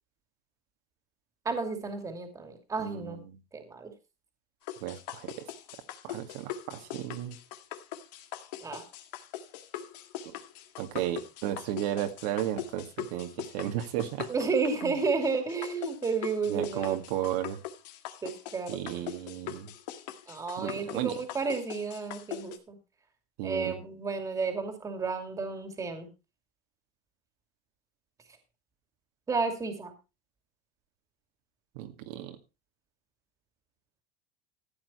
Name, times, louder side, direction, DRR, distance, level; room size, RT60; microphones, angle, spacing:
voice 1, 1.4-3.2 3.5-3.9 8.6-8.8 14.3-17.0 18.2-18.8 20.3-22.8 23.4-26.1 29.3-29.9, right 4 dB, 15° right, 6 dB, 2.5 m, -32 dB
voice 2, 2.8-3.4 4.8-5.5 6.0-7.4 10.2-10.3 10.8-14.3 14.8-14.9 16.5-17.6 18.7-19.7 20.6-21.2 23.4-23.8 31.8-32.4, right 12 dB, 70° right, 5 dB, 2.1 m, -34 dB
sound 1, 4.7-22.6, left 11 dB, 90° left, 2.0 m, -42 dB
14.5 x 9.0 x 4.2 m, 0.28 s
supercardioid pair, 155°, 21 cm